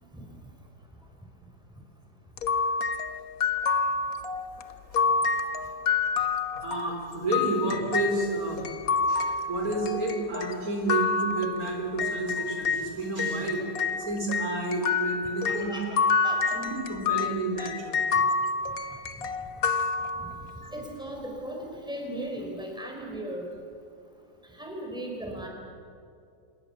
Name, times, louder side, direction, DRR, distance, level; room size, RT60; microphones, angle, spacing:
sound 1, 2.4-12.9 13.2-20.6, left 5 dB, 65° left, 1.4 m, -28 dB
voice 1, 4.7-5.7 6.5-8.7 9.1-15.7 16.5-18.1 20.6-20.7, right 2 dB, 60° right, 1 dB, 4.6 m, -31 dB
voice 2, 15.4-16.0 16.2-16.5 20.7-23.5 24.6-25.5, right 1 dB, 5° right, 0 dB, 4.6 m, -37 dB
26.5 x 21.5 x 7.2 m, 2.4 s
omnidirectional pair, 1.7 m